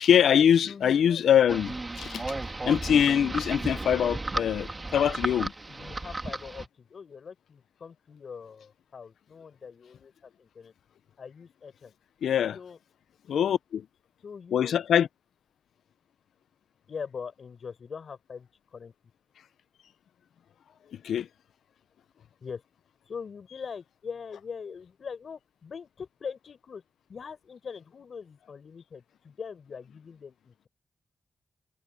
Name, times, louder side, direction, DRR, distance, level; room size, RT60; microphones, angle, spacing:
voice 1, 0.0-2.2 2.6-5.5 12.2-12.6 13.3-13.8 14.5-15.1 20.9-21.3, left 9 dB, 90° left, 0.6 m, -23 dB
voice 2, 0.6-1.3 5.7-10.7 11.2-11.9 12.5-12.8 14.2-14.8 16.9-18.9 22.4-22.7 23.0-26.8 27.1-30.7, left 6 dB, 65° left, 5.7 m, -42 dB
sound 1, 1.5-6.7, right 2 dB, 30° right, 2.2 m, -34 dB
cardioid pair, 65°, 0 cm